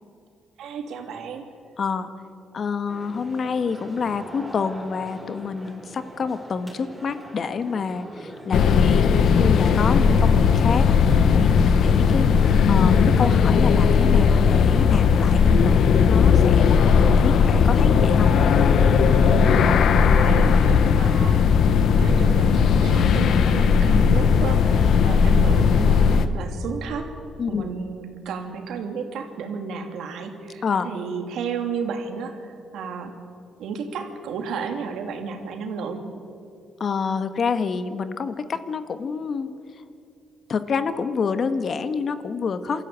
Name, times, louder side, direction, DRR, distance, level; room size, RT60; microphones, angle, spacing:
voice 1, 0.6-1.4 10.0-10.2 19.2-21.5 22.0-27.1 27.5-33.1 33.6-36.0, right 5 dB, 80° right, 4 dB, 2.8 m, -32 dB
voice 2, 1.8-2.1 2.5-10.9 11.2-12.3 12.7-18.3 23.8-24.2 27.4-27.7 30.6-30.9 36.8-39.8 40.5-42.8, left 5 dB, 50° left, 10 dB, 1.5 m, -28 dB
sound 1, 2.9-19.0, right 1 dB, 10° right, 6.6 m, -42 dB
sound 2, 8.5-26.3, left 6 dB, 70° left, 1.2 m, -17 dB
27.0 x 13.5 x 9.0 m, 2.4 s
cardioid pair, 90°, 0 cm